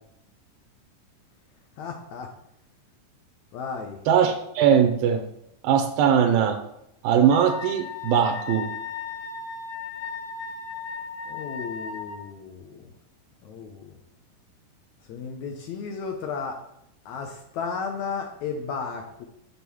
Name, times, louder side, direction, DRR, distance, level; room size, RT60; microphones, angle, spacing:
voice 1, 1.8-2.3 3.5-4.0 11.3-12.9 13.4-13.9 15.1-16.6 17.0-19.3, left 5 dB, 75° left, 4 dB, 1.7 m, -34 dB
voice 2, 4.1-5.2 5.6-6.6 7.0-8.7, right 8 dB, 85° right, 6 dB, 2.5 m, -20 dB
Wind instrument woodwind instrument, 7.3-12.2, left 5 dB, 60° left, 1.7 m, -36 dB
6.2 x 5.9 x 6.9 m, 0.80 s
omnidirectional pair, 4.1 m